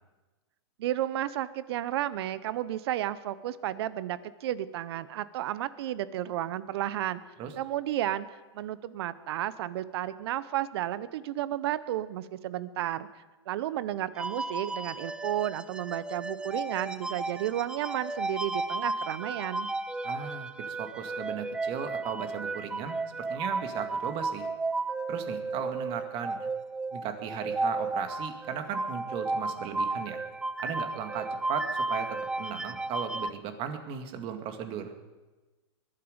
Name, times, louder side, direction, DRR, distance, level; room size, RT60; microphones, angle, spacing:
voice 1, 0.8-7.2 7.6-13.1 13.5-19.7, right 12 dB, 60° right, 16 dB, 0.9 m, -32 dB
sound 1, 14.2-33.3, right 2 dB, 5° right, 0.4 m, -34 dB
voice 2, 20.0-24.5 25.1-26.5 26.9-30.2 30.6-32.1 32.4-34.9, right 8 dB, 35° right, 7 dB, 2.1 m, -36 dB
21.5 x 12.5 x 5.2 m, 1.2 s
hypercardioid pair, 130°, 15 cm